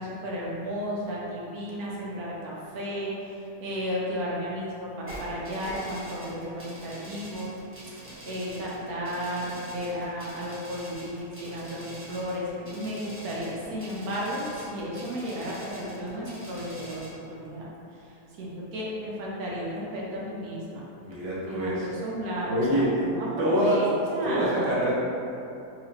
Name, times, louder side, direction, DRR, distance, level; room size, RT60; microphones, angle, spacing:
voice 1, 0.0-7.5 8.2-20.8 21.4-23.8 24.1-24.7, equal, 65° right, -5 dB, 1.2 m, -33 dB
sound 1, 5.1-17.1, right 1 dB, 10° right, 0.6 m, -44 dB
voice 2, 21.0-22.0 22.5-23.8 24.2-25.0, equal, 80° right, -7 dB, 1.5 m, -26 dB
3.8 x 3.1 x 2.8 m, 2.8 s
omnidirectional pair, 1.8 m